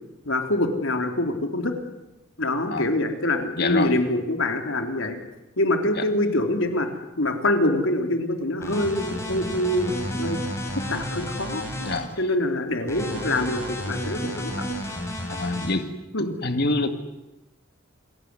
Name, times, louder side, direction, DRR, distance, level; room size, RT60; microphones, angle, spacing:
voice 1, 0.3-1.7 2.4-5.2 5.6-6.9 7.2-10.4 10.9-11.6 12.2-14.7 16.1-16.4, left 1 dB, 80° left, 5 dB, 3.7 m, -25 dB
voice 2, 3.6-3.9 6.0-6.1 11.8-12.1 15.3-15.9 16.2-16.9, left 2 dB, 55° left, 8 dB, 2.1 m, -26 dB
sound 1, 8.6-12.0 12.9-15.7, equal, 15° left, 7.7 m, -31 dB
29.0 x 20.5 x 9.8 m, 0.98 s
head